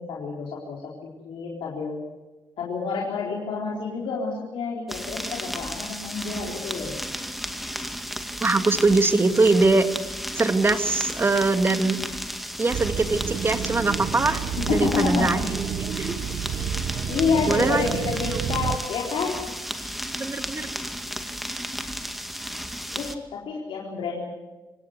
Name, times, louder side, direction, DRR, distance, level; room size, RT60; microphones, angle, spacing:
voice 1, 0.0-2.0 2.6-6.9 14.6-15.3 17.1-19.4 22.9-24.2, left 5 dB, 80° left, -2 dB, 4.2 m, -28 dB
sound 1, 4.9-23.1, equal, ahead, 2.2 m, -34 dB
voice 2, 8.4-9.9 10.3-12.0 12.6-14.4 14.7-16.1 17.5-17.9 20.1-20.7, right 3 dB, 25° right, 9 dB, 2.0 m, -22 dB
sound 2, 12.7-18.8, right 8 dB, 60° right, 0.9 m, -30 dB
26.0 x 18.0 x 8.2 m, 1.2 s
cardioid pair, 95°, 9 cm